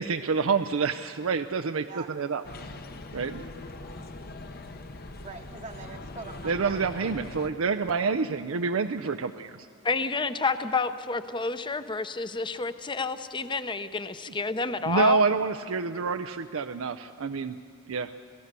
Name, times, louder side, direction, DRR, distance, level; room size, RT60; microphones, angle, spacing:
voice 1, 0.0-2.4 3.1-3.4 6.4-9.5 14.9-17.6 17.9-18.1, right 4 dB, 85° right, 7 dB, 0.6 m, -27 dB
sound 1, 2.4-7.5, left 2 dB, 50° left, 1.0 m, -41 dB
voice 2, 5.2-7.1, right 3 dB, 35° right, 2 dB, 1.0 m, -43 dB
voice 3, 9.8-15.2, left 4 dB, 25° left, 11 dB, 0.7 m, -29 dB
27.5 x 17.0 x 6.8 m, 2.2 s
head